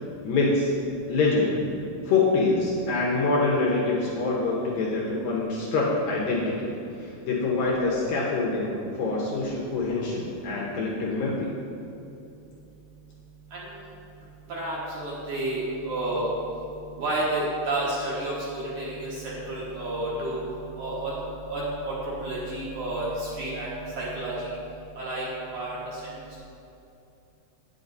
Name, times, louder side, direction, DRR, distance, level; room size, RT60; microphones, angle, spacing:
voice 1, 0.2-0.7 1.1-1.6 2.1-6.7 7.0-11.5, left 3 dB, 75° left, -4 dB, 2.2 m, -25 dB
voice 2, 14.5-16.3 17.0-20.4 20.8-21.1 21.5-23.7 24.0-24.3 25.0-25.3 25.5-26.0, right 1 dB, 60° right, -7 dB, 2.3 m, -30 dB
9.2 x 8.1 x 4.0 m, 2.8 s
omnidirectional pair, 4.9 m